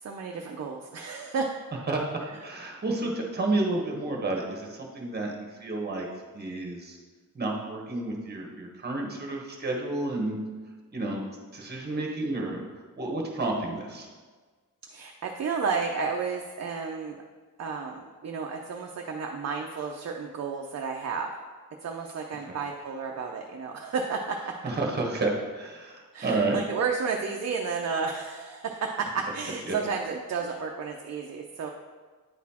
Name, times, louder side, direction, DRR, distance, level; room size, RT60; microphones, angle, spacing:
voice 1, 0.0-1.5 14.9-17.2 17.6-21.3 21.8-24.5 26.1-31.7, right 5 dB, 50° right, 1 dB, 0.5 m, -32 dB
voice 2, 2.4-6.1 6.3-7.0 7.3-10.4 10.9-11.2 11.5-12.6 13.0-14.1 22.5-22.6 24.6-26.6 29.6-29.7, right 2 dB, 30° right, 0 dB, 1.2 m, -30 dB
9.5 x 4.1 x 4.2 m, 1.4 s
wide cardioid pair, 175°, 34 cm